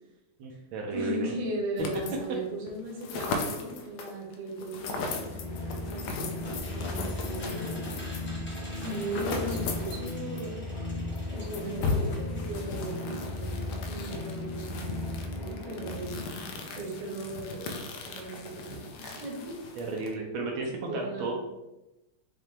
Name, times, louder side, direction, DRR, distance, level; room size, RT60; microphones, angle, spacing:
voice 1, 0.4-1.3 19.8-21.3, right 3 dB, 80° right, 1 dB, 1.4 m, -33 dB
voice 2, 0.9-7.7 8.8-11.0 11.2-16.3 16.7-19.6 20.9-21.3, right 1 dB, 45° right, -3 dB, 1.1 m, -37 dB
sound 1, 1.8-2.4 2.7-10.5 10.7-10.8 11.2-20.1, left 3 dB, 75° left, 0.9 m, -37 dB
sound 2, 4.9-16.6, left 2 dB, 45° left, 1.6 m, -37 dB
sound 3, 5.7-12.6 12.9-13.0 13.2-13.3, left 1 dB, 10° left, 0.5 m, -48 dB
5.6 x 2.3 x 3.2 m, 0.99 s
omnidirectional pair, 2.3 m